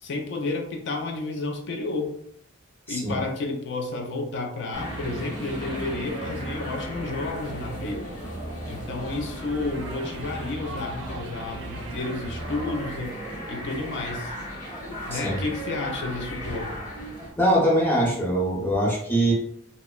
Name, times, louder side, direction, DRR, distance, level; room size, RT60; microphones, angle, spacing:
voice 1, 0.0-2.1 2.9-8.0 8.7-13.2 13.5-14.3 15.1-16.8, left 3 dB, 65° left, 3 dB, 0.4 m, -31 dB
voice 2, 2.9-3.2 15.1-15.4 17.4-19.3, right 1 dB, 10° left, -4 dB, 0.7 m, -22 dB
sound 1, 4.7-17.3, equal, 45° left, 0.9 m, -37 dB
sound 2, 4.7-13.8, right 2 dB, 70° right, 0.4 m, -39 dB
2.7 x 2.1 x 2.2 m, 0.66 s
head